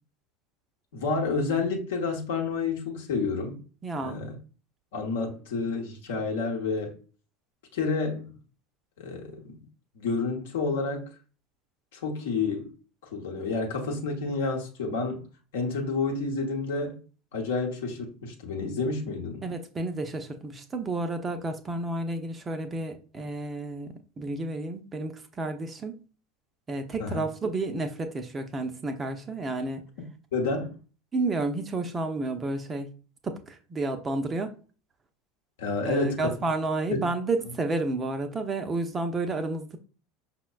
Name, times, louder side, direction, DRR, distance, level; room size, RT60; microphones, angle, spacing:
voice 1, 0.9-3.6 4.0-4.4 4.9-7.0 7.7-8.3 9.0-9.6 10.0-11.1 11.9-12.7 13.1-15.3 15.5-17.0 17.3-19.4 27.0-27.2 30.3-30.8 35.6-36.3 36.9-37.0, left 4 dB, 65° left, 0.8 m, -29 dB
voice 2, 3.8-4.2 19.4-26.0 26.7-29.8 31.1-32.9 33.2-34.6 35.8-39.8, right 2 dB, 25° right, 0.5 m, -31 dB
5.5 x 2.1 x 2.3 m
figure-of-eight pair, 75°, 0 cm